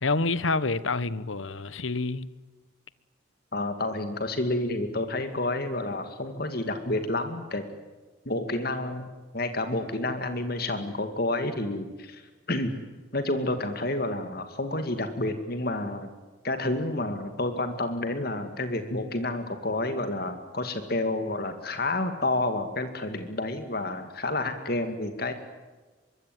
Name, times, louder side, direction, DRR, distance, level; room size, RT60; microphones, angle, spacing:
voice 1, 0.0-2.3, left 3 dB, 75° left, 1.2 m, -27 dB
voice 2, 3.5-7.7 8.3-9.1 9.3-12.2 12.5-12.7 13.1-16.1 16.4-25.3, left 2 dB, 50° left, 2.3 m, -29 dB
25.0 x 23.5 x 9.4 m
head